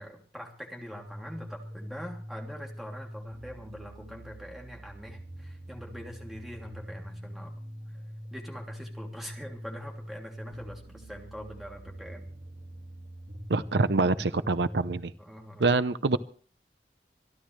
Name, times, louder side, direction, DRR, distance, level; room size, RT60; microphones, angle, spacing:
voice 1, 0.0-7.5 8.3-12.3 15.2-15.8, equal, ahead, 0 dB, 3.0 m, -43 dB
sound 1, 1.0-15.0, equal, 55° right, 3.4 m, -44 dB
voice 2, 13.5-15.1 15.6-16.2, right 3 dB, 80° right, 13 dB, 0.7 m, -25 dB
26.5 x 11.5 x 3.3 m, 0.41 s
head